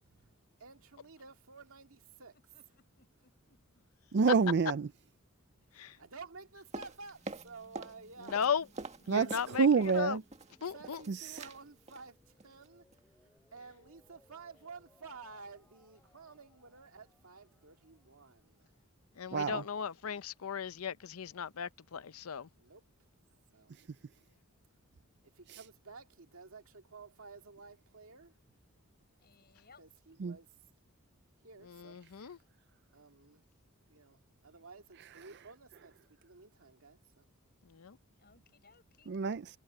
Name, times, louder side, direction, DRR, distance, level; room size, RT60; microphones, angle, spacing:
voice 1, 0.6-2.3 5.7-8.4 10.7-12.8 13.5-18.7 22.5-22.8 23.5-23.7 25.3-28.3 29.8-30.5 31.4-32.0 32.9-33.4 33.9-36.0 36.2-37.3, right 4 dB, 75° right, 2.1 m, -52 dB
voice 2, 2.5-3.8 29.2-29.9 38.2-39.1, left 4 dB, 45° left, 6.5 m, -64 dB
voice 3, 4.1-4.9 9.1-10.2 11.1-11.4 19.3-19.6 25.5-25.6 30.2-30.4 39.1-39.5, right 5 dB, 50° right, 0.4 m, -28 dB
sound 1, 6.7-8.0 8.2-10.0 10.3-11.1 11.4-11.6 11.9-12.1 12.4-12.7 12.9-13.0, right 3 dB, 30° right, 1.8 m, -45 dB
sound 2, 6.9-18.7, equal, 10° left, 3.8 m, -68 dB
voice 4, 8.2-8.7 9.1-9.7 9.9-10.2 10.6-11.0 19.2-22.5 31.6-32.4 37.7-38.0, left 7 dB, 85° left, 0.6 m, -36 dB
head